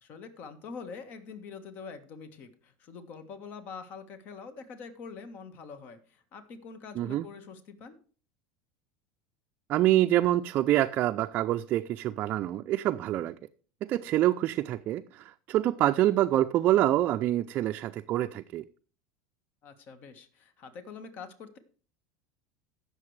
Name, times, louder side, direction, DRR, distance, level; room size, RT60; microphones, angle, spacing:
voice 1, 0.0-8.0 19.6-21.6, left 5 dB, 50° left, 10 dB, 1.5 m, -45 dB
voice 2, 7.0-7.3 9.7-13.4 13.8-18.6, right 14 dB, 45° right, 5 dB, 0.4 m, -26 dB
17.5 x 6.8 x 3.3 m, 0.41 s
supercardioid pair, 110°, 4 cm